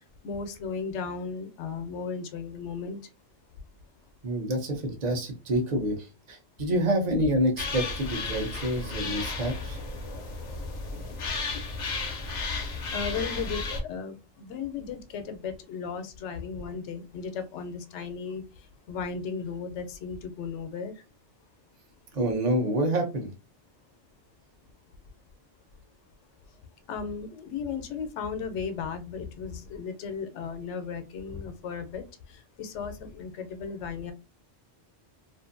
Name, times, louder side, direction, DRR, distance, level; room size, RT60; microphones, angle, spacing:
voice 1, 0.2-3.0 12.9-18.4 18.9-20.9 26.9-32.0 32.6-34.1, left 5 dB, 85° left, 9 dB, 0.9 m, -35 dB
voice 2, 4.2-6.0 6.3-9.8 22.1-23.3, right 1 dB, 40° right, 3 dB, 0.7 m, -27 dB
sound 1, 7.6-13.8, left 3 dB, 50° left, 0.6 m, -33 dB
2.6 x 2.5 x 2.5 m, 0.28 s
omnidirectional pair, 1.2 m